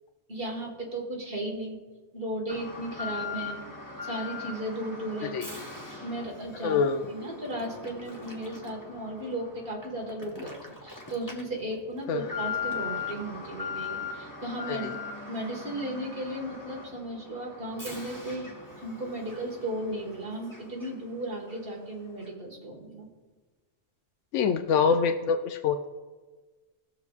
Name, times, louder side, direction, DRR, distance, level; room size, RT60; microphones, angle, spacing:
voice 1, 0.3-1.8 2.1-3.6 4.0-6.8 7.1-10.6 10.8-15.0 15.3-18.5 18.7-23.1, right 1 dB, 50° right, -1 dB, 1.9 m, -35 dB
Alarm, 2.5-21.2 21.5-21.6 22.2-22.3, left 5 dB, 15° left, 1.1 m, -40 dB
voice 2, 6.6-7.1 12.1-12.2 14.7-14.9 24.3-25.9, left 6 dB, 85° left, 6 dB, 0.9 m, -25 dB
19.5 x 6.7 x 2.4 m, 1.3 s
omnidirectional pair, 1.2 m